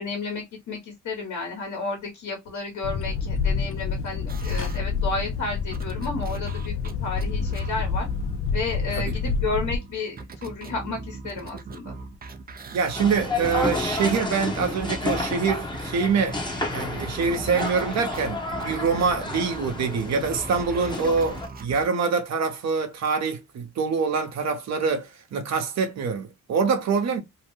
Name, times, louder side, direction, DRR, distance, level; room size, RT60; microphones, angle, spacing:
voice 1, 0.0-6.7 7.0-8.1 8.5-12.0, left 3 dB, 65° left, 1.3 m, -32 dB
sound 1, 2.8-9.8, left 5 dB, 50° left, 0.4 m, -28 dB
sound 2, 4.3-19.8 20.2-21.9, right 3 dB, 30° right, 0.5 m, -40 dB
voice 2, 8.9-9.3 12.7-16.4 16.7-27.2, right 5 dB, 60° right, 0.9 m, -25 dB
sound 3, 13.0-21.5, left 2 dB, 15° left, 0.9 m, -31 dB
2.8 x 2.1 x 3.1 m
cardioid pair, 90°, 30 cm